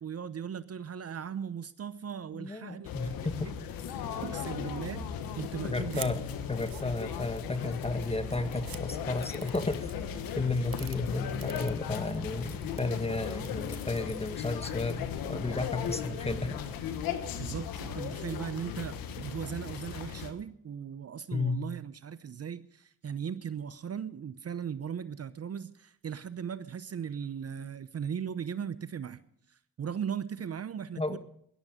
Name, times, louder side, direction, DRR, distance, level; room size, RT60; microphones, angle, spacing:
voice 1, 0.0-2.9 3.2-3.5 4.2-6.1 17.4-29.2 29.5-31.2, right 7 dB, 45° right, 14 dB, 0.8 m, -38 dB
voice 2, 2.3-3.5 5.6-6.2 6.5-9.9 10.4-16.6 21.3-21.6 31.0-31.2, left 3 dB, 15° left, 8 dB, 1.8 m, -33 dB
sound 1, 2.8-20.3, left 7 dB, 85° left, 1.4 m, -37 dB
sound 2, 5.9-6.1 6.5-7.4 8.0-8.1 8.3-8.8 9.2-9.9 10.6-11.0 11.4-12.2 12.6-12.8 13.4-14.0, right 15 dB, 80° right, 0.9 m, -45 dB
17.5 x 12.0 x 5.1 m, 0.68 s
supercardioid pair, 50°, 34 cm